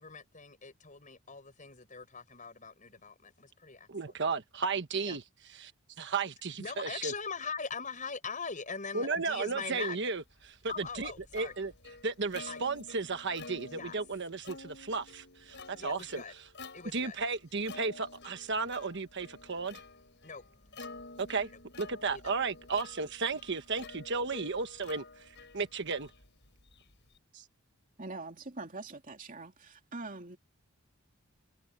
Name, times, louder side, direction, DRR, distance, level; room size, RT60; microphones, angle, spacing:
voice 1, 0.0-4.1 5.1-5.2 6.6-10.0 10.7-11.5 12.5-12.6 13.7-14.0 15.8-16.3 16.7-17.2 20.2-21.2 22.1-22.3, left 5 dB, 35° left, 6.1 m, -42 dB
voice 2, 3.9-5.2 5.6-5.7 6.0-7.1 8.9-11.7 12.0-16.2 16.9-19.8 21.2-21.5 21.8-26.1 27.3-27.4, right 4 dB, 55° right, 1.3 m, -34 dB
Plucked string instrument, 10.4-27.2, left 3 dB, 55° left, 7.4 m, -50 dB
voice 3, 28.0-30.4, right 3 dB, 40° right, 2.9 m, -43 dB
head